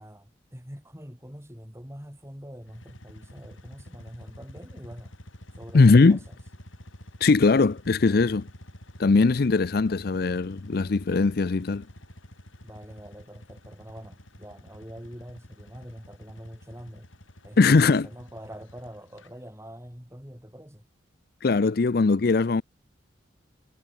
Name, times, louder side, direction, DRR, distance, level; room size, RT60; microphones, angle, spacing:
voice 1, 0.0-5.1 5.6-6.4 12.6-17.1 17.4-20.9, equal, 15° right, 7.0 m, -44 dB
sound 1, 2.6-19.3, left 1 dB, 90° left, 7.5 m, -48 dB
voice 2, 5.7-6.2 7.2-8.5 9.0-11.8 17.6-18.1 21.4-22.6, left 3 dB, 50° left, 0.5 m, -20 dB
head